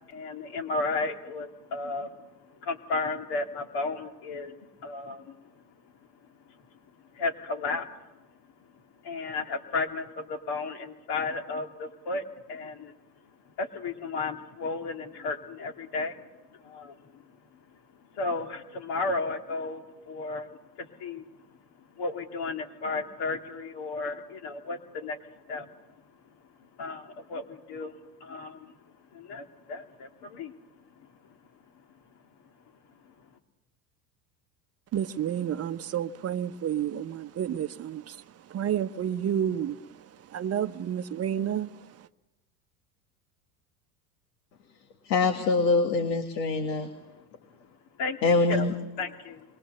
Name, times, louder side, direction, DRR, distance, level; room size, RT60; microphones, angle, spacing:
voice 1, 0.1-2.1 2.6-5.4 7.1-7.9 9.0-12.9 13.6-16.2 16.6-16.9 18.1-20.5 20.8-21.2 22.0-25.2 25.5-25.7 26.8-27.9 28.2-28.7 29.1-30.5 48.0-48.2 48.5-49.4, left 3 dB, 50° left, 2.7 m, -33 dB
voice 2, 34.9-38.2 38.5-39.8 40.3-41.7, right 9 dB, 30° right, 0.9 m, -30 dB
voice 3, 45.1-46.9 48.2-48.7, left 3 dB, 80° left, 2.1 m, -24 dB
29.5 x 23.0 x 6.7 m
hypercardioid pair, 80°, 49 cm